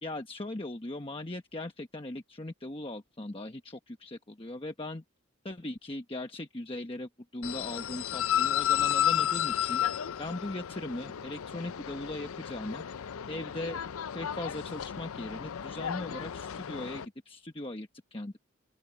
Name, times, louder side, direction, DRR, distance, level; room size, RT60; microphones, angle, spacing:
voice 1, 0.0-5.0 5.4-12.8 13.3-13.8 14.1-18.4, left 1 dB, 25° left, 1.1 m, -39 dB
sound 1, 7.4-17.1, left 10 dB, 80° left, 0.5 m, -32 dB
open air
head